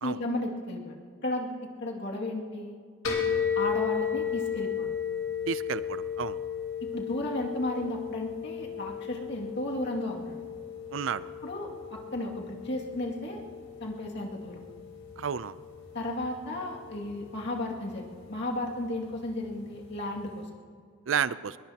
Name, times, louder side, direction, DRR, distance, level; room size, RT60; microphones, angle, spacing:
voice 1, 0.0-1.0 1.2-2.8 3.6-4.9 6.8-10.4 11.4-13.4 13.8-14.6 15.9-20.4, left 1 dB, 60° left, -1 dB, 2.3 m, -34 dB
sound 1, 3.0-20.4, left 7 dB, 80° left, 3.6 m, -35 dB
voice 2, 5.5-6.4 10.9-11.3 15.2-15.6 21.1-21.6, right 7 dB, 70° right, 16 dB, 0.5 m, -31 dB
22.0 x 21.0 x 2.9 m, 2.1 s
head